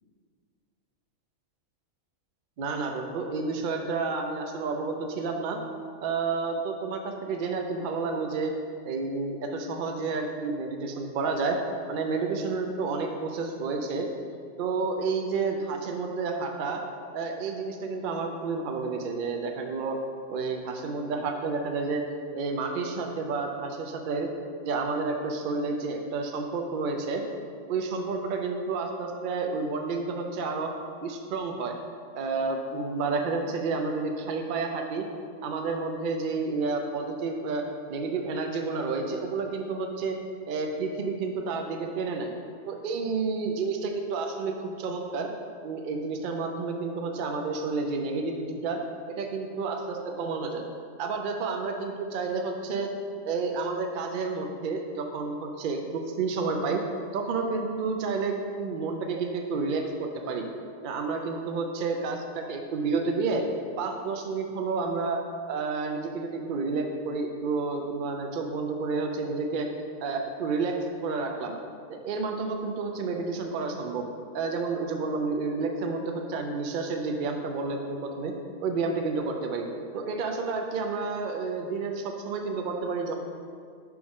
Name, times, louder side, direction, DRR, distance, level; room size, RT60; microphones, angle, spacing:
voice 1, 2.6-5.6 6.0-8.5 8.9-11.6 11.9-14.1 14.6-16.8 17.1-20.0 20.3-22.0 22.3-24.3 24.6-27.2 27.7-30.7 31.0-31.7 32.1-35.1 35.4-37.6 37.9-40.2 40.5-42.3 42.7-45.3 45.6-48.8 49.1-50.6 51.0-52.9 53.2-56.8 57.1-60.5 60.8-63.4 63.8-65.2 65.5-69.7 70.0-71.6 71.9-74.1 74.3-78.3 78.6-79.7 79.9-83.2, right 4 dB, 75° right, 3 dB, 0.4 m, -30 dB
6.2 x 4.6 x 3.5 m, 2.2 s
omnidirectional pair, 1.4 m